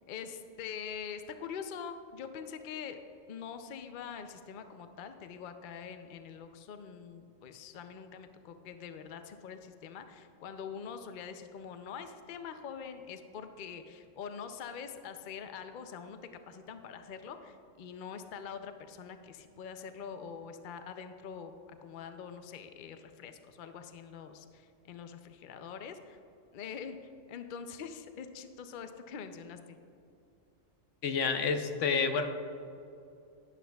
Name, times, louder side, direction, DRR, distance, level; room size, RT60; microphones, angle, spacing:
voice 1, 0.1-3.0 3.3-16.2 16.5-21.5 21.8-26.2 26.5-29.8, left 7 dB, 55° left, 8 dB, 0.6 m, -44 dB
voice 2, 31.0-32.3, left 5 dB, 70° left, 7 dB, 1.0 m, -29 dB
11.5 x 11.0 x 2.3 m, 2.6 s
omnidirectional pair, 1.3 m